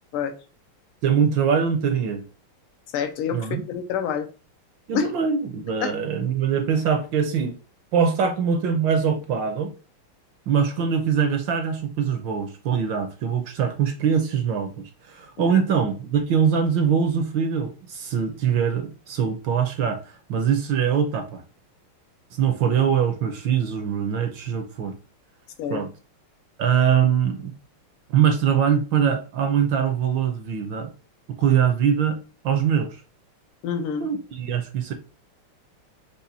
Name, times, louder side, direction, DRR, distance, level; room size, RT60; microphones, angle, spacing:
voice 1, 1.0-2.2 3.3-3.6 4.9-7.5 7.9-9.7 10.5-21.4 22.3-24.9 25.7-25.9 26.6-27.5 28.1-30.9 31.4-33.0 34.0-34.9, right 7 dB, 75° right, 1.2 m, -23 dB
voice 2, 2.9-4.3 4.9-5.1 5.8-5.9 15.5-15.6 25.6-25.8 33.6-34.1, left 7 dB, 80° left, 1.6 m, -27 dB
5.4 x 2.4 x 4.0 m
omnidirectional pair, 2.4 m